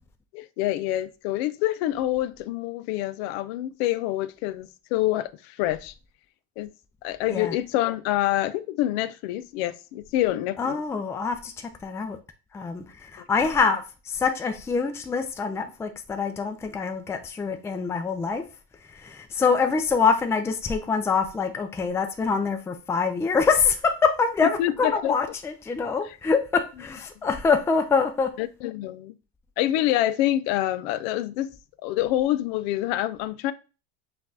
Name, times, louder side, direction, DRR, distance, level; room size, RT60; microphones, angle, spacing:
voice 1, 0.3-5.9 6.6-6.7 7.0-10.8 24.6-25.1 28.4-29.1 29.6-31.5 31.8-33.5, left 14 dB, 70° left, 0.5 m, -26 dB
voice 2, 10.6-12.2 12.5-18.4 18.9-28.3, left 5 dB, 10° left, 0.4 m, -25 dB
5.8 x 2.5 x 2.6 m
supercardioid pair, 100°, 32 cm